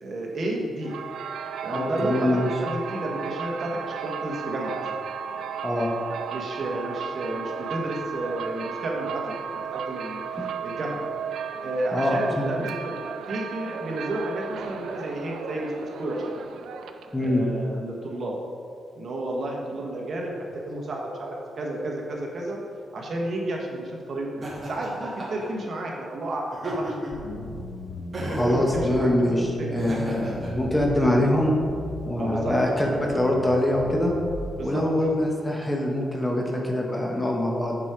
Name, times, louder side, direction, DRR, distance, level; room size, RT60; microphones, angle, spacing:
voice 1, 0.0-0.9 1.6-4.8 6.3-9.4 9.7-10.2 10.6-11.0 11.6-12.9 13.3-16.2 17.2-18.3 18.9-22.6 22.9-27.3 28.2-30.0 30.6-30.8 32.2-32.5 34.6-34.8, right 1 dB, 50° right, -1 dB, 1.2 m, -32 dB
sound 1, 0.8-17.2, right 7 dB, 85° right, 0.4 m, -34 dB
voice 2, 1.7-2.5 5.6-5.9 11.9-12.5 17.1-17.4 28.3-31.5 32.1-34.1 34.6-37.8, left 1 dB, 10° left, 0 dB, 0.9 m, -24 dB
Laughter, 24.4-25.5 26.5-27.2 28.1-28.6 29.7-30.5, right 1 dB, 30° right, 1.6 m, -33 dB
sound 2, 27.1-34.5, left 2 dB, 80° left, 1.0 m, -36 dB
7.3 x 4.8 x 5.0 m, 2.4 s
cardioid pair, 130°, 0 cm